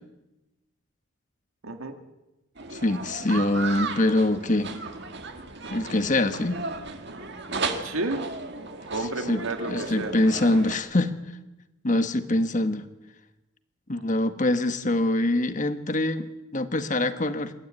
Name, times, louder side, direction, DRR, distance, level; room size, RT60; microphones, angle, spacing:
voice 1, 1.6-2.0 7.8-8.3 8.9-10.1, right 2 dB, 80° right, 6 dB, 2.1 m, -31 dB
sound 1, 2.6-10.8, right 3 dB, 55° right, 2.0 m, -35 dB
voice 2, 2.7-4.7 5.7-6.6 9.3-11.1 11.8-12.9 13.9-17.5, left 1 dB, 35° left, 9 dB, 1.4 m, -24 dB
26.0 x 13.0 x 9.2 m, 1.0 s
head